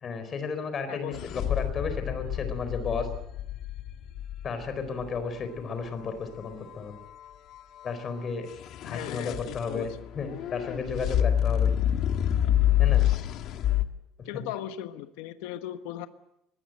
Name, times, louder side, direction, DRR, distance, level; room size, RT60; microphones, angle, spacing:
voice 1, 0.0-3.1 4.4-7.0 7.8-8.5 8.8-11.7 12.8-13.1 14.3-14.4, left 5 dB, 30° left, 9 dB, 4.3 m, -33 dB
voice 2, 0.9-1.2 8.8-10.0 14.2-16.1, left 12 dB, 90° left, 9 dB, 1.3 m, -37 dB
sound 1, 1.1-5.2 8.5-13.8, left 11 dB, 50° left, 1.6 m, -27 dB
23.0 x 20.0 x 7.9 m, 0.84 s
cardioid pair, 155°, 0 cm